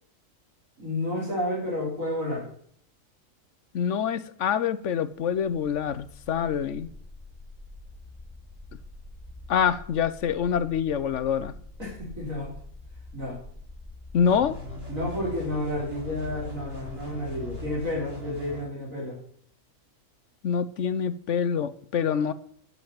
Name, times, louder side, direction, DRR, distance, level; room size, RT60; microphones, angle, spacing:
voice 1, 0.8-2.5 11.8-12.5 13.1-13.4 14.9-19.2, left 1 dB, 75° right, -5 dB, 5.2 m, -31 dB
voice 2, 3.7-6.9 9.5-11.5 14.1-14.6 20.4-22.3, left 7 dB, 65° left, 14 dB, 1.1 m, -26 dB
sound 1, 5.4-17.8, left 2 dB, 10° left, 3.0 m, -45 dB
sound 2, 14.2-18.6, left 2 dB, 45° right, 5.0 m, -39 dB
10.5 x 8.0 x 8.8 m, 0.62 s
omnidirectional pair, 1.4 m